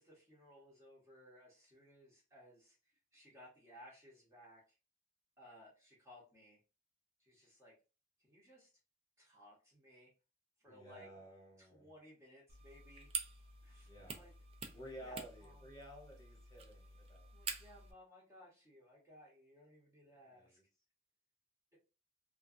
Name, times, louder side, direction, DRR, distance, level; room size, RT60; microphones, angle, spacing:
voice 1, 0.0-4.8 5.4-6.6 7.2-7.8 8.2-8.7 9.2-10.1 10.6-11.1 11.6-13.1 13.6-14.3 15.0-15.6 17.3-20.6, left 1 dB, 15° right, -4 dB, 0.8 m, -60 dB
voice 2, 10.6-11.9 13.8-14.3 14.7-17.5 20.2-20.6, right 1 dB, 20° left, -2 dB, 1.0 m, -54 dB
sound 1, 12.5-17.9, right 5 dB, 30° right, 0.4 m, -47 dB
2.4 x 2.2 x 2.5 m, 0.32 s
head